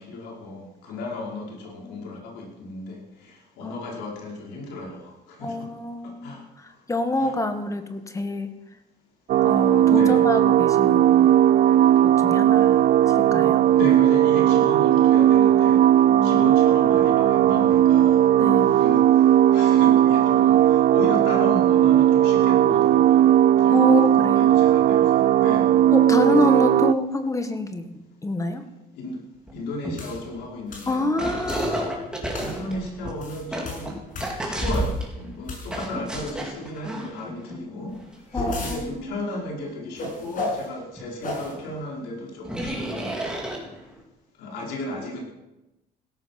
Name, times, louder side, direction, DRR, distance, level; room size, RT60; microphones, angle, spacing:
voice 1, 0.0-5.7 6.0-6.4 7.2-7.4 9.5-10.2 12.6-12.7 13.8-15.8 16.2-18.3 18.6-25.7 26.3-26.8 28.9-29.2 29.5-31.1 31.5-31.6 32.4-34.0 34.4-38.0 38.3-43.2 44.4-45.2, left 2 dB, 85° left, -1 dB, 5.2 m, -34 dB
voice 2, 5.4-8.5 9.4-11.4 12.0-12.8 13.2-13.7 16.1-16.5 18.4-18.9 23.7-24.5 25.9-28.6 30.9-31.8 38.3-39.2, left 2 dB, 20° left, 8 dB, 1.8 m, -27 dB
sound 1, 9.3-26.9, right 11 dB, 55° right, 0.5 m, -17 dB
sound 2, 29.5-29.6 29.8-30.6 31.2-35.2 35.7-37.6 38.0-38.1 40.5-40.6 41.0-41.1 41.5-41.6 42.4-44.0, right 1 dB, 5° right, 3.9 m, -31 dB
sound 3, 30.0-30.2 30.7-31.0 31.5-31.8 32.3-32.6 33.1-35.0 35.4-36.0 37.9-38.8 40.0-40.7 41.2-41.5, left 2 dB, 50° left, 7.0 m, -33 dB
16.5 x 13.5 x 6.0 m, 0.97 s
cardioid pair, 110°, 17 cm